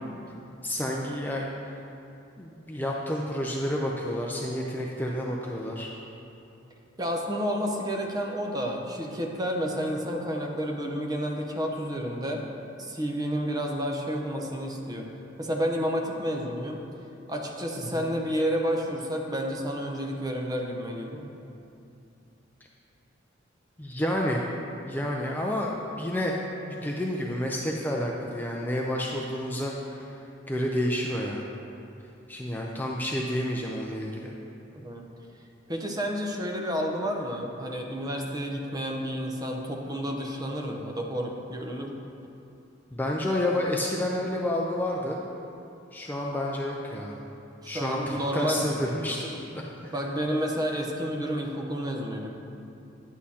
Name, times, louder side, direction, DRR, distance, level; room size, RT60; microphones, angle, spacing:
voice 1, 0.6-1.5 2.4-5.9 17.8-18.1 23.8-24.4 24.8-26.4 26.7-30.2 30.5-31.4 32.3-34.4 42.9-45.2 45.9-47.2 47.7-49.9, left 1 dB, 10° left, -2 dB, 0.4 m, -30 dB
voice 2, 7.0-12.4 12.8-15.1 15.4-16.8 17.3-21.3 34.7-35.0 35.7-42.0 47.6-49.2 49.9-52.3, equal, 20° right, 1 dB, 0.7 m, -30 dB
9.7 x 8.4 x 2.8 m, 2.7 s
head